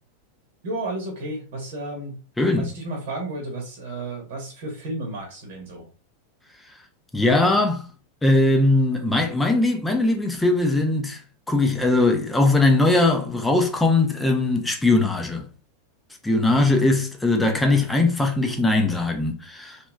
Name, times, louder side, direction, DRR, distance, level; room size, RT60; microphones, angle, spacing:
voice 1, 0.6-2.2 2.5-5.9, right 2 dB, 50° right, 1.1 m, -32 dB
voice 2, 2.4-2.7 7.1-7.9 8.2-11.2 11.5-15.4 16.2-19.8, left 2 dB, 10° left, 0.6 m, -20 dB
3.2 x 3.0 x 2.3 m
figure-of-eight pair, 90°, 0 cm